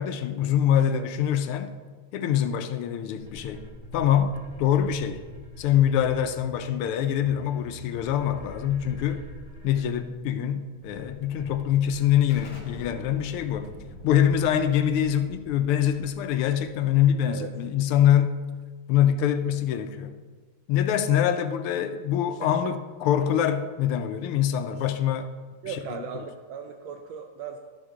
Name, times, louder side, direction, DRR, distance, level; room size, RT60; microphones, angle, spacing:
voice 1, 0.0-1.7 2.1-3.6 3.9-5.2 5.6-9.3 9.6-13.7 14.0-18.4 18.9-20.2 20.7-25.3, left 10 dB, 85° left, 9 dB, 1.5 m, -24 dB
sound 1, 3.2-12.7, equal, 35° right, 2.1 m, -44 dB
Explosion, 12.3-17.7, left 1 dB, 70° left, 2.4 m, -45 dB
voice 2, 25.6-27.6, right 7 dB, 75° right, 4 dB, 1.3 m, -37 dB
12.5 x 6.6 x 3.6 m, 1.4 s
omnidirectional pair, 2.4 m